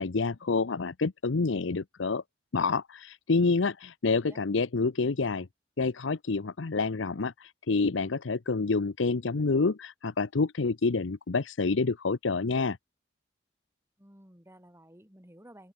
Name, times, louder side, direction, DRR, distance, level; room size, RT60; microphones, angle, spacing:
voice 1, 0.0-2.2 2.5-5.5 5.8-12.8, left 4 dB, 85° left, 0.7 m, -28 dB
voice 2, 14.0-15.7, right 1 dB, 15° right, 4.6 m, -53 dB
open air
head